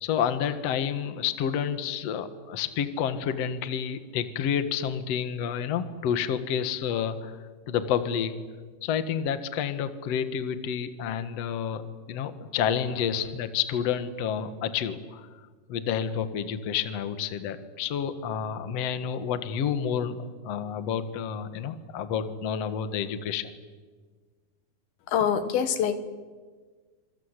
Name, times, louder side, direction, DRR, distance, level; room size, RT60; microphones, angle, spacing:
voice 1, 0.0-7.4 7.7-8.4 8.8-15.3 15.7-23.5, left 8 dB, 85° left, 11 dB, 1.4 m, -29 dB
voice 2, 25.1-26.0, left 8 dB, 65° left, 11 dB, 2.8 m, -25 dB
26.5 x 26.0 x 8.2 m, 1.5 s
omnidirectional pair, 5.4 m